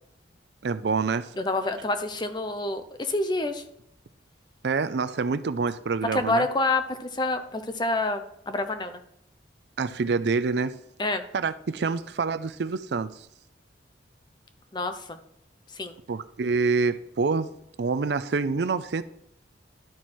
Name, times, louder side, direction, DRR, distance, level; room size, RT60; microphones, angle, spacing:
voice 1, 0.6-1.3 4.6-6.5 9.8-10.8 11.3-13.3 16.1-17.5 17.8-19.0, right 4 dB, 65° right, 0.4 m, -26 dB
voice 2, 1.4-3.6 6.1-9.0 11.0-11.3 14.7-15.2 15.7-16.0, left 2 dB, 25° left, 0.7 m, -28 dB
12.0 x 4.6 x 4.3 m
head